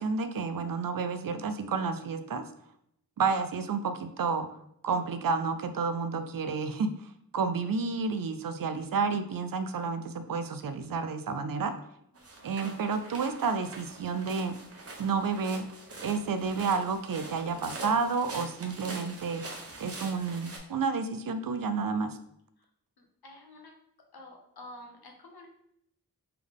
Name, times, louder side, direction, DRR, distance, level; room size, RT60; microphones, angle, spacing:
voice 1, 0.0-2.4 3.2-4.5 4.8-11.7 12.4-14.5 15.0-15.7 16.0-19.5 19.8-22.2, right 5 dB, 60° right, 9 dB, 0.5 m, -30 dB
voice 2, 12.1-12.5 22.6-22.7 23.0-23.7 24.1-25.5, left 1 dB, 70° left, 2 dB, 0.9 m, -50 dB
sound 1, 12.2-20.6, right 2 dB, 40° right, 0.8 m, -44 dB
3.5 x 3.4 x 3.6 m, 0.74 s
wide cardioid pair, 70°, 38 cm